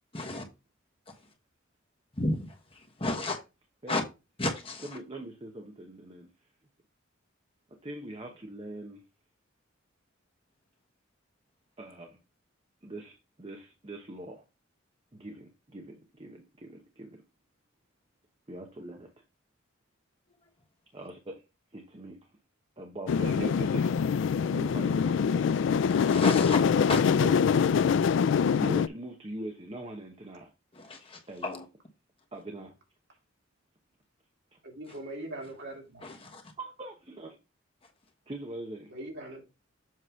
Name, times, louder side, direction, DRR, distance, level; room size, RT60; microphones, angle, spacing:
voice 1, 0.1-0.5 2.1-3.4 3.9-4.0 4.4-4.9 25.9-27.0 30.7-31.6 36.0-36.4, left 2 dB, 30° left, 1.3 m, -32 dB
voice 2, 4.8-6.3 7.7-9.0 11.8-12.2 12.8-14.4 15.1-17.2 18.5-19.1 20.9-21.4 21.7-22.3 22.8-24.0 24.4-25.5 27.2-27.3 28.6-30.5 31.3-31.6 32.3-32.8 34.5-34.6 36.6-37.4 38.3-38.9, right 1 dB, 30° right, 0.9 m, -41 dB
sound 1, 23.1-28.9, left 6 dB, 65° left, 0.3 m, -24 dB
voice 3, 34.6-36.0 38.9-39.4, right 1 dB, 60° right, 2.7 m, -41 dB
7.6 x 3.1 x 5.6 m
head